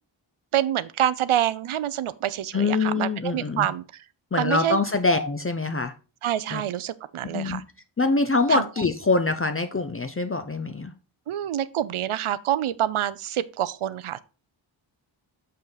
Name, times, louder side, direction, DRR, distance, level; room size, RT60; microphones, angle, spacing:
voice 1, 0.5-4.0 4.4-4.8 6.2-7.6 8.5-8.6 11.3-14.2, right 11 dB, 80° right, 0.6 m, -26 dB
voice 2, 2.5-3.7 4.3-5.9 6.5-6.6 7.3-7.6 8.0-10.9, left 3 dB, 30° left, 0.5 m, -24 dB
6.9 x 5.6 x 3.9 m
wide cardioid pair, 120°, 49 cm